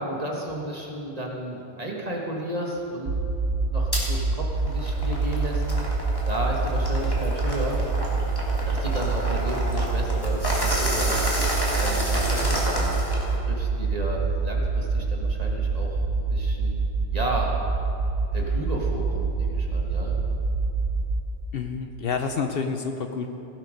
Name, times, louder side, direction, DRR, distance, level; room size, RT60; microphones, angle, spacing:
voice 1, 0.0-3.1 3.7-6.0 6.3-7.8 8.6-11.2 11.7-13.0 13.5-16.8 17.1-17.6 18.3-20.2, right 1 dB, 35° right, -1 dB, 1.5 m, -33 dB
sound 1, 3.1-21.2, right 3 dB, 70° right, 1.0 m, -26 dB
sound 2, 3.9-4.1 4.6-13.4, equal, 20° left, 2.0 m, -30 dB
voice 2, 21.5-23.3, left 5 dB, 60° left, 6 dB, 0.8 m, -28 dB
16.5 x 7.9 x 5.2 m, 2.9 s
omnidirectional pair, 1.2 m